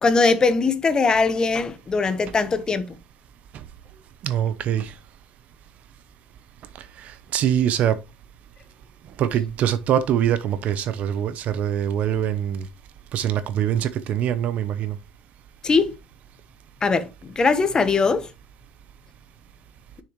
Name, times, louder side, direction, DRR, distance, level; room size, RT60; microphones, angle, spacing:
voice 1, 0.0-2.9 15.6-15.9 16.8-18.3, left 4 dB, 30° left, 1.1 m, -21 dB
voice 2, 4.2-4.9 7.0-8.0 9.2-12.7 13.1-15.0, right 10 dB, 60° right, 0.8 m, -23 dB
6.6 x 6.3 x 3.1 m
cardioid pair, 105°, 3 cm